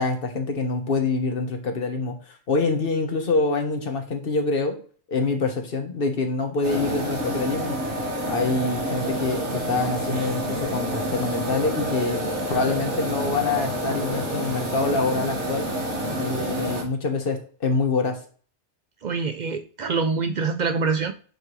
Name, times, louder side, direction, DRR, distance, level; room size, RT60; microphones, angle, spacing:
voice 1, 0.0-4.8 5.1-7.8 8.3-12.2 12.5-15.7 16.2-18.2, left 3 dB, 55° left, 1.3 m, -25 dB
sound 1, 6.6-16.8, right 1 dB, 80° right, 1.8 m, -28 dB
voice 2, 19.0-21.1, right 4 dB, 60° right, 0.5 m, -25 dB
9.0 x 3.4 x 3.1 m
omnidirectional pair, 1.2 m